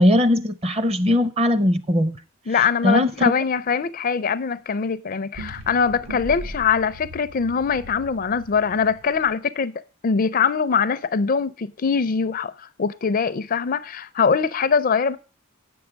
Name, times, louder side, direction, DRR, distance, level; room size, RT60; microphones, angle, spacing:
voice 1, 0.0-2.2 2.8-3.3, left 1 dB, 30° right, 0.7 m, -19 dB
voice 2, 2.5-9.7 10.0-15.2, left 6 dB, 40° left, 0.4 m, -22 dB
sound 1, 5.3-9.3, equal, 75° right, 1.5 m, -39 dB
8.5 x 6.2 x 7.2 m
head